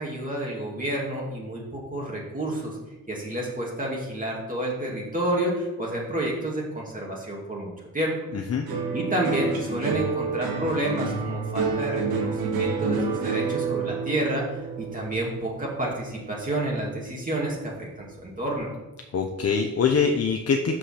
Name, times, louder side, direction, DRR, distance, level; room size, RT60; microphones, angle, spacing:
voice 1, 0.0-2.8 3.1-8.1 8.9-18.7, right 1 dB, 25° right, -4 dB, 2.2 m, -29 dB
voice 2, 8.3-8.7 19.1-20.8, left 5 dB, 45° left, 4 dB, 0.8 m, -24 dB
sound 1, 8.7-17.1 17.4-18.1, right 4 dB, 90° right, 1.7 m, -29 dB
6.5 x 5.6 x 5.7 m, 1.1 s
cardioid pair, 75°, 35 cm